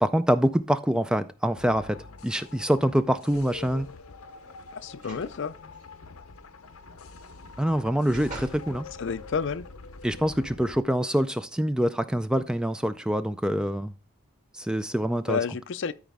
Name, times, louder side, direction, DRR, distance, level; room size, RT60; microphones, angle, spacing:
voice 1, 0.0-2.0 2.2-3.9 7.6-8.8 10.0-13.9 14.5-15.4, equal, 5° right, 0.3 m, -25 dB
sound 1, 1.5-10.8, left 4 dB, 85° left, 0.8 m, -45 dB
sound 2, 3.3-3.8 4.9-5.3 5.7-5.8 7.4-8.7 9.3-9.4, right 2 dB, 40° right, 2.6 m, -43 dB
voice 2, 4.7-5.6 9.0-9.7 15.3-15.9, left 6 dB, 60° left, 0.5 m, -30 dB
13.0 x 5.0 x 3.5 m
head